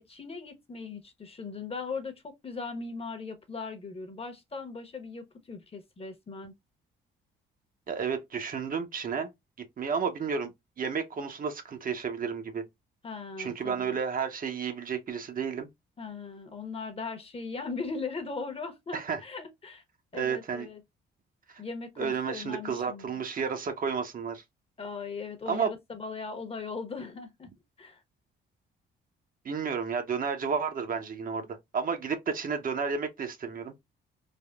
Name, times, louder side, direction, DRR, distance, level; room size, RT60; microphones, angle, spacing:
voice 1, 0.0-6.5 13.0-14.0 16.0-19.8 20.1-20.8 21.6-23.2 24.8-27.5 27.8-28.0, left 4 dB, 30° left, 0.8 m, -39 dB
voice 2, 7.9-9.3 9.8-10.5 10.8-12.6 13.4-15.7 18.9-19.2 20.1-20.7 21.5-21.6 22.0-24.4 25.5-25.7 29.4-33.7, right 6 dB, 45° right, 0.7 m, -32 dB
3.4 x 2.1 x 2.2 m
cardioid pair, 90°, 20 cm